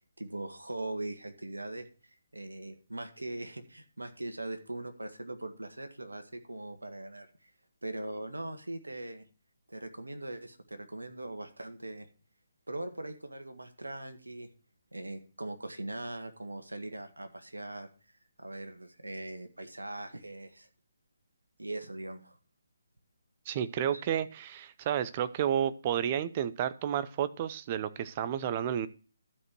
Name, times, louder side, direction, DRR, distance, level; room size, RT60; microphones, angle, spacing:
voice 1, 0.2-1.9 2.3-7.5 7.8-9.2 9.7-12.1 12.7-14.5 14.9-20.7 21.6-22.4 23.9-24.0, right 2 dB, 80° right, 7 dB, 1.7 m, -41 dB
voice 2, 23.5-28.9, right 9 dB, 30° right, 13 dB, 0.7 m, -31 dB
12.5 x 5.2 x 6.0 m, 0.37 s
figure-of-eight pair, 145°, 0 cm